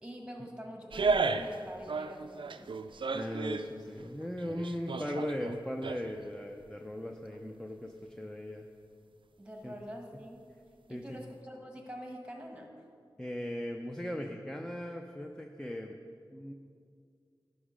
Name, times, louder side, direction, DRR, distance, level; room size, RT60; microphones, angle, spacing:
voice 1, 0.0-2.8 9.4-10.5 10.9-12.8, equal, 10° right, 2 dB, 1.5 m, -45 dB
sound 1, 0.9-1.6 1.9-3.7 4.2-6.3 6.6-6.7, right 4 dB, 65° right, 0.4 m, -33 dB
voice 2, 3.1-8.7 9.6-9.7 10.9-11.2 13.2-16.0 16.3-16.5, left 1 dB, 5° left, 3 dB, 0.6 m, -38 dB
11.0 x 5.4 x 5.1 m, 2.3 s
cardioid pair, 45°, 9 cm